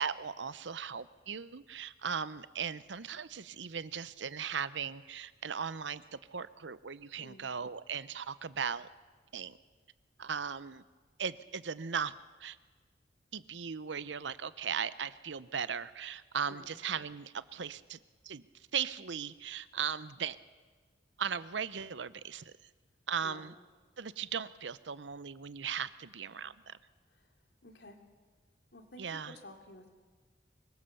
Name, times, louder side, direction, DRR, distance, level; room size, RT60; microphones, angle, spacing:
voice 1, 0.0-8.9 9.3-9.6 10.2-10.8 11.2-12.1 12.4-12.6 13.3-18.4 18.7-20.4 21.2-22.5 23.1-23.6 24.0-26.8 29.0-29.4, right 7 dB, 90° right, 16 dB, 0.8 m, -38 dB
voice 2, 27.6-28.0 28.7-29.9, left 1 dB, 75° left, 3 dB, 2.9 m, -52 dB
25.0 x 22.0 x 7.1 m, 1.4 s
head